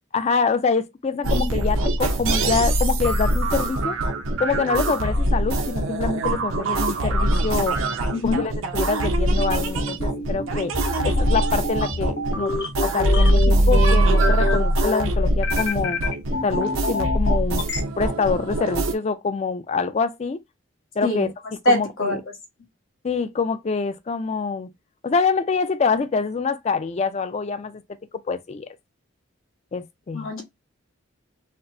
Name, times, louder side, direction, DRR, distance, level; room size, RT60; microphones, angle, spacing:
voice 1, 0.1-4.0 4.4-7.8 8.2-10.7 11.0-12.5 12.8-16.0 16.4-17.6 18.0-20.4 21.0-21.3 21.6-22.2 23.0-24.7 25.0-27.8 28.3-28.7 29.7-30.3, left 4 dB, 35° left, 0.3 m, -25 dB
sound 1, 1.2-18.9, right 1 dB, 85° right, 0.7 m, -22 dB
voice 2, 8.1-8.4 21.0-21.3 21.6-22.2 30.1-30.4, left 1 dB, 90° left, 1.4 m, -23 dB
sound 2, 9.4-17.8, left 3 dB, 55° left, 0.7 m, -27 dB
4.2 x 2.0 x 2.6 m
head